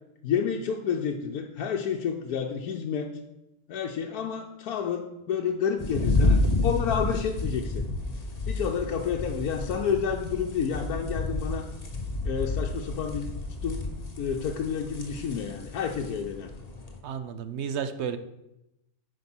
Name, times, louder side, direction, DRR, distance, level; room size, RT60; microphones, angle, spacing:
voice 1, 0.2-3.2 3.7-7.8 8.5-11.7 12.2-13.3 13.6-13.8 14.2-16.5, left 7 dB, 75° left, 1 dB, 1.2 m, -30 dB
sound 1, 5.8-17.0, left 2 dB, 30° left, 1.1 m, -30 dB
voice 2, 17.0-18.2, right 7 dB, 60° right, 11 dB, 0.8 m, -32 dB
9.5 x 5.1 x 6.1 m, 0.90 s
omnidirectional pair, 1.6 m